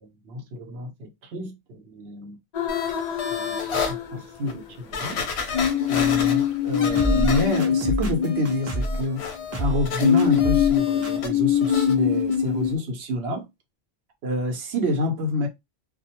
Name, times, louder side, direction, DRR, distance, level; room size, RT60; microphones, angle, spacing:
voice 1, 0.0-2.4 3.3-3.6 3.9-5.3 5.9-9.3 9.6-13.5 14.2-15.5, left 1 dB, 80° right, 1.0 m, -28 dB
sound 1, 2.5-4.7 5.5-9.2 10.0-12.8, left 9 dB, 55° left, 0.5 m, -23 dB
sound 2, 2.7-3.9 4.5-4.6 4.9-7.9 8.2-11.3 11.6-11.9 12.3-12.4, left 5 dB, 90° left, 0.9 m, -32 dB
sound 3, 6.9-9.0 9.5-9.9 10.2-10.7 11.0-11.1, right 1 dB, 20° right, 0.6 m, -27 dB
2.3 x 2.1 x 2.8 m
omnidirectional pair, 1.1 m